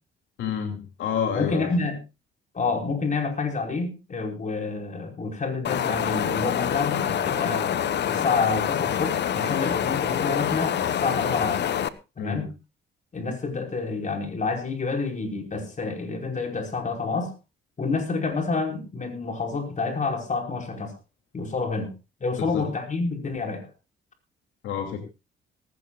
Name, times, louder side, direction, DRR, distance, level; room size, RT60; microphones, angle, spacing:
voice 1, 0.4-1.7 12.2-12.4 22.4-22.7 24.6-25.0, left 7 dB, 85° left, 5 dB, 2.7 m, -29 dB
voice 2, 1.3-2.0 2.5-7.7 8.1-11.7 12.2-12.5 13.1-17.3 17.8-20.9 21.3-21.9 22.2-23.7, left 4 dB, 40° left, 3 dB, 5.0 m, -28 dB
Wind, 5.6-11.9, left 9 dB, 60° left, 1.0 m, -26 dB
19.0 x 16.5 x 2.4 m, 0.27 s
cardioid pair, 90°, 20 cm